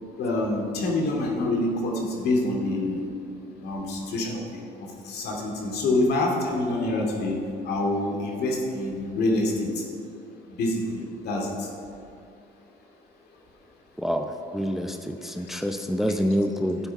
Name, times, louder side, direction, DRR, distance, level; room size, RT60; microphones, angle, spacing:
voice 1, 0.2-3.0 3.6-4.6 5.1-7.3 7.7-9.7 10.6-10.8 11.2-11.5, left 2 dB, 75° left, 0 dB, 2.5 m, -26 dB
voice 2, 14.5-16.8, equal, ahead, 5 dB, 0.6 m, -26 dB
13.0 x 7.5 x 5.5 m, 2.6 s
cardioid pair, 110°, 17 cm